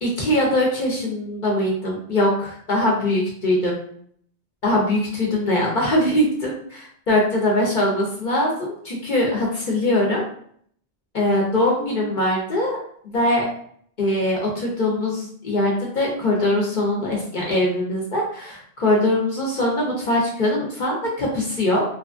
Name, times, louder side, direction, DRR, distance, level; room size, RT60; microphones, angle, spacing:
voice 1, 0.0-3.8 4.6-10.2 11.1-12.8 13.0-13.4 14.0-21.8, left 1 dB, 55° left, -2 dB, 0.7 m, -22 dB
2.9 x 2.3 x 2.4 m, 0.62 s
omnidirectional pair, 1.1 m